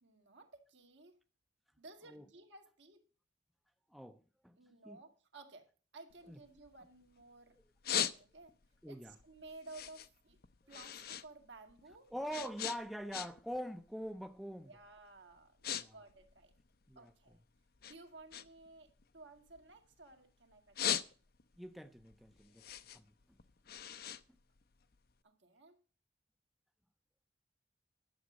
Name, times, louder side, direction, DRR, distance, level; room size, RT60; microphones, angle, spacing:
voice 1, 0.0-1.2 1.8-3.1 4.6-5.7 5.9-7.6 8.0-8.5 8.9-10.4 10.7-12.1 14.7-16.5 17.0-17.4 17.8-21.1 25.2-25.8, right 2 dB, 80° right, 2.2 m, -56 dB
voice 2, 3.9-4.6 4.8-5.0 6.3-6.4 8.8-9.2 12.1-14.7 15.7-15.9 16.9-17.1 21.6-22.7 22.9-23.1, equal, ahead, 0.5 m, -44 dB
sound 1, 6.1-7.2 7.6-8.7 9.1-11.3 11.6-13.6 13.9-14.2 14.8-15.0 15.3-15.8 16.1-17.3 17.8-20.1 20.5-21.6 22.0-25.1, left 10 dB, 55° left, 0.6 m, -40 dB
11.5 x 7.3 x 6.2 m
head